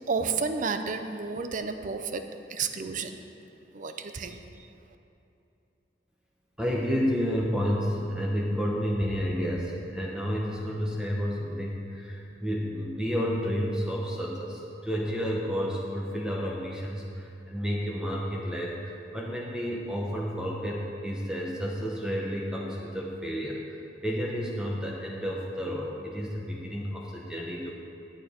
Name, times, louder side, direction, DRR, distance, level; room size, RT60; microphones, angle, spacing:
voice 1, 0.1-2.2 2.5-3.2 3.7-4.4, right 5 dB, 45° right, 8 dB, 0.5 m, -31 dB
voice 2, 6.6-27.7, equal, 5° right, -3 dB, 0.8 m, -31 dB
9.0 x 8.6 x 4.3 m, 2.8 s
head